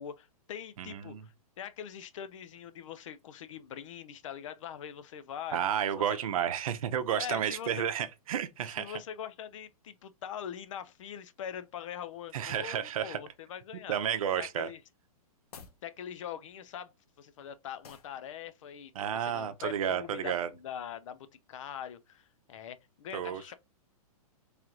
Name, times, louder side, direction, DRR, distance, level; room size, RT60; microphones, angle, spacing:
voice 1, 0.0-5.6 6.0-6.2 7.1-7.8 8.8-14.0 14.3-14.8 15.8-16.9 17.2-23.5, left 9 dB, 55° left, 0.6 m, -43 dB
voice 2, 0.8-1.2 5.5-8.9 12.3-13.2 13.9-14.7 19.0-20.5 23.1-23.5, right 9 dB, 65° right, 0.7 m, -31 dB
sound 1, 15.4-15.8 17.8-18.2, left 6 dB, 90° left, 0.9 m, -50 dB
3.2 x 3.0 x 3.7 m
hypercardioid pair, 155°, 19 cm